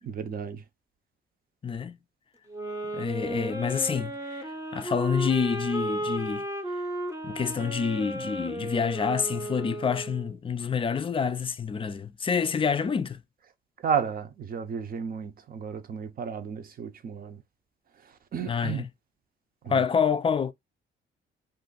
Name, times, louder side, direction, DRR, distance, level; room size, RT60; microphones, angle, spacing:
voice 1, 0.0-0.6 13.8-17.4 17.9-18.9 19.6-19.8, right 7 dB, 50° right, 0.6 m, -33 dB
voice 2, 1.6-2.0 2.9-6.4 7.2-13.2 18.5-18.8 19.7-20.5, left 6 dB, 25° left, 0.4 m, -27 dB
sound 1, 2.5-10.3, right 1 dB, 15° right, 0.7 m, -34 dB
2.5 x 2.5 x 3.7 m
cardioid pair, 90°, 20 cm